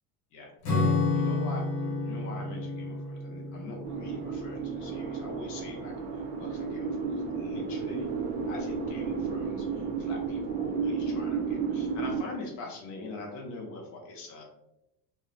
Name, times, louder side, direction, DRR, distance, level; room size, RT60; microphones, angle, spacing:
voice 1, 0.3-8.1 8.5-14.4, left 3 dB, 40° left, 0 dB, 0.6 m, -43 dB
Acoustic guitar / Strum, 0.6-5.4, left 3 dB, 70° left, 1.0 m, -31 dB
sound 1, 3.8-12.2, right 5 dB, 70° right, 0.6 m, -32 dB
2.5 x 2.0 x 2.5 m, 0.85 s
cardioid pair, 160°, 46 cm